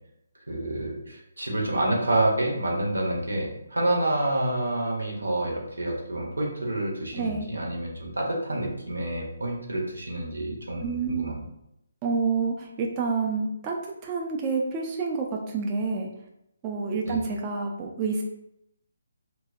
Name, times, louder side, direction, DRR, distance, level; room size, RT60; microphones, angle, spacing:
voice 1, 0.5-11.4 17.0-17.2, right 1 dB, 85° right, -1 dB, 0.7 m, -28 dB
voice 2, 7.1-7.5 10.8-11.4 12.0-16.1 16.6-18.2, right 4 dB, 25° right, 0 dB, 0.3 m, -28 dB
2.5 x 2.1 x 2.3 m, 0.81 s
figure-of-eight pair, 150°, 0 cm